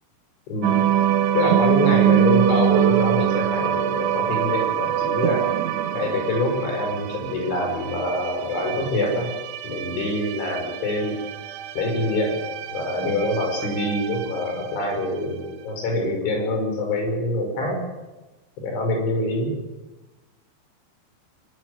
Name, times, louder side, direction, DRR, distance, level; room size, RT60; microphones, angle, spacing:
voice 1, 0.5-0.9 1.3-5.5 5.9-9.3 9.6-11.2 11.8-12.5 12.7-17.8 18.6-19.5, left 1 dB, 80° left, 2 dB, 7.8 m, -25 dB
sound 1, 0.6-15.1, right 11 dB, 85° right, 3.6 m, -24 dB
22.5 x 13.0 x 9.9 m, 1.1 s
omnidirectional pair, 5.3 m